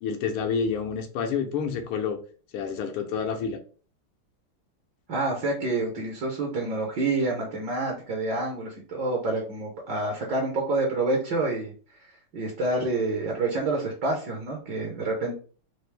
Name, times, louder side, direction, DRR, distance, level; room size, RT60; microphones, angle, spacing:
voice 1, 0.0-2.2 2.5-3.6, left 6 dB, 85° left, 1.6 m, -28 dB
voice 2, 5.1-11.7 12.3-15.4, right 2 dB, 60° right, 1.4 m, -28 dB
4.7 x 2.5 x 3.3 m
omnidirectional pair, 2.4 m